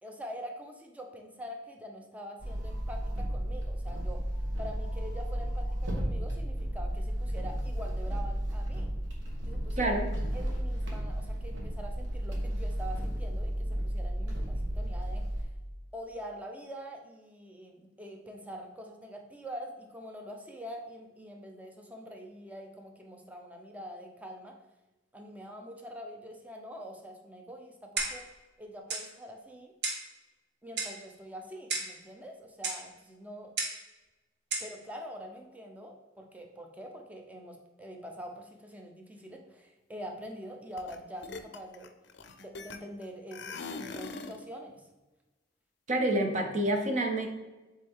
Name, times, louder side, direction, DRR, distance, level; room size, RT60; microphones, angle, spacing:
voice 1, 0.0-4.2 4.6-8.9 9.5-10.0 10.3-15.5 15.9-24.6 25.1-28.3 28.6-29.7 30.6-33.5 34.6-41.9 42.4-44.9, equal, 10° right, 2 dB, 0.6 m, -45 dB
sound 1, 2.4-15.4, equal, 80° right, 1.2 m, -33 dB
voice 2, 9.8-10.1 45.9-47.3, right 1 dB, 40° right, 4 dB, 0.8 m, -28 dB
Clock, 28.0-28.3 28.9-29.1 29.8-30.1 30.8-31.0 31.7-32.0 32.6-32.8 33.6-33.8 34.5-34.7, right 3 dB, 60° right, 1.0 m, -33 dB
sound 2, 40.8-41.0 41.2-43.0 43.3-44.4, left 4 dB, 65° left, 0.5 m, -41 dB
7.4 x 3.5 x 3.6 m, 1.1 s
head